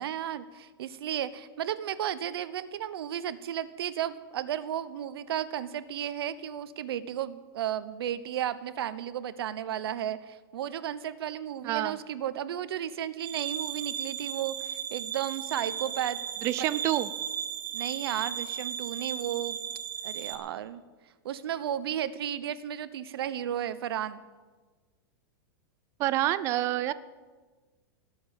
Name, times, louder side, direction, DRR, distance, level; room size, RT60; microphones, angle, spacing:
voice 1, 0.0-16.2 16.6-16.7 17.7-19.6 20.0-20.8 21.2-24.2, right 10 dB, 75° right, 14 dB, 0.9 m, -34 dB
voice 2, 11.6-12.0 16.4-17.1 26.0-26.9, right 14 dB, 20° right, 16 dB, 0.4 m, -27 dB
sound 1, 13.2-20.3, right 8 dB, 55° right, 1.8 m, -36 dB
18.0 x 7.0 x 9.4 m, 1.4 s
supercardioid pair, 170°, 13 cm